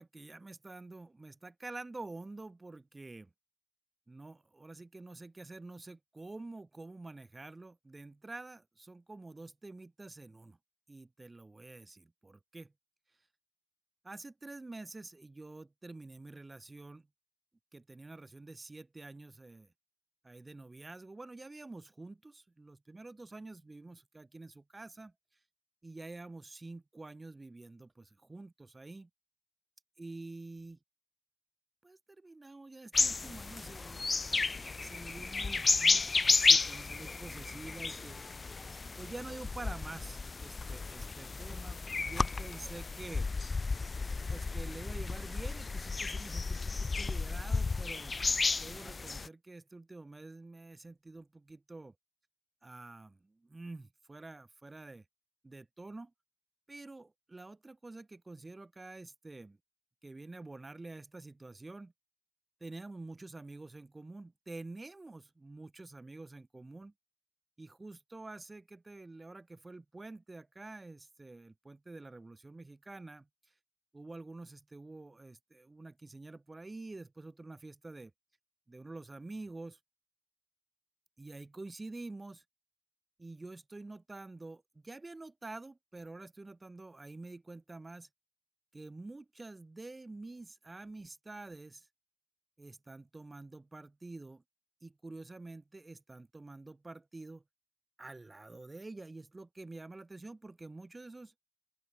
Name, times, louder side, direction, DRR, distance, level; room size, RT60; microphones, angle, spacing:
voice 1, 0.0-3.3 4.1-10.6 10.9-12.7 14.0-17.1 17.7-19.7 20.2-25.1 25.8-29.1 30.0-30.8 31.8-38.2 39.0-43.3 44.3-48.2 48.6-51.9 52.6-55.0 55.4-56.1 56.7-59.6 60.0-61.9 62.6-66.9 67.6-73.3 73.9-78.1 78.7-79.8 81.2-82.4 83.2-88.1 88.7-91.9 92.6-94.4 94.8-97.4 98.0-101.3, right 2 dB, 25° right, 6.8 m, -48 dB
sound 1, 32.9-49.3, left 4 dB, 40° left, 0.8 m, -32 dB
open air
hypercardioid pair, 45°, 0 cm